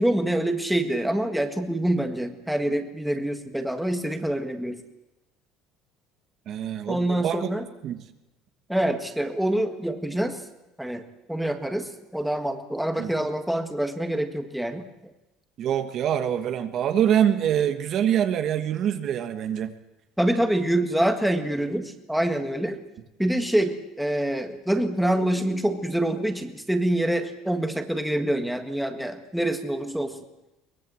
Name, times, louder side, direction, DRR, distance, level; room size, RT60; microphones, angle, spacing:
voice 1, 0.0-4.8 6.9-7.7 8.7-10.4 10.8-11.0 11.3-14.8 20.2-22.8 23.2-30.2, right 1 dB, ahead, 6 dB, 1.7 m, -26 dB
voice 2, 6.5-7.5 7.8-8.0 13.0-13.1 15.6-19.7, right 9 dB, 40° right, 8 dB, 1.4 m, -25 dB
23.0 x 20.5 x 7.8 m, 0.95 s
cardioid pair, 165°, 0 cm